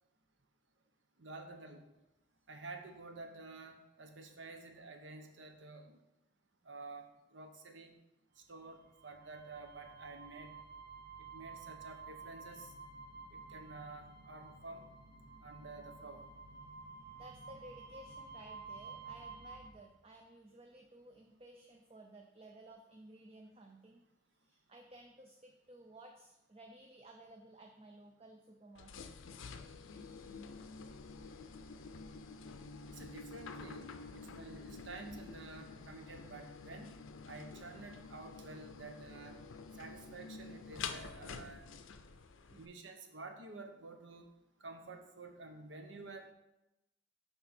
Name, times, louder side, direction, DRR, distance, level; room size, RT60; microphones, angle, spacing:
voice 1, 1.2-1.8 2.5-6.0 6.7-7.9 8.5-10.5 11.3-12.7 13.3-14.8 15.4-16.2 32.9-33.9 34.2-36.9 37.3-39.4 39.8-41.7 42.5-44.3 44.6-46.3, right 3 dB, 70° right, 5 dB, 0.9 m, -50 dB
sound 1, 8.7-19.7, right 4 dB, 50° right, 0.9 m, -52 dB
voice 2, 17.1-24.0 24.3-29.1 42.5-42.6, right 1 dB, 30° right, 3 dB, 0.5 m, -56 dB
sound 2, 28.7-42.7, left 4 dB, 85° left, 0.5 m, -49 dB
6.9 x 5.3 x 4.2 m, 0.93 s
head